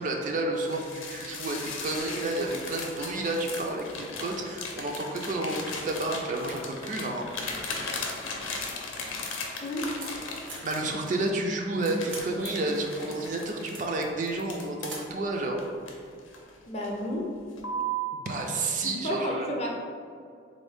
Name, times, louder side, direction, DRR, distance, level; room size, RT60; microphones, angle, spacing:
voice 1, 0.0-7.3 10.6-15.6 18.1-19.5, right 2 dB, 40° right, 1 dB, 0.3 m, -30 dB
sound 1, 0.6-11.3 11.8-15.0 15.6-16.5 16.8-17.1 17.6-18.1, left 1 dB, 90° left, 0.6 m, -37 dB
sound 2, 1.8-1.9 2.5-3.3 4.0-4.7 5.4-5.5 5.8-5.9 6.2-8.2 8.7-10.7 11.4-12.4 12.8-14.1 14.9-15.3, right 3 dB, 75° right, 0.9 m, -46 dB
voice 2, 16.7-17.2 18.8-19.7, equal, 30° left, -1 dB, 0.5 m, -31 dB
3.9 x 2.6 x 3.4 m, 2.3 s
head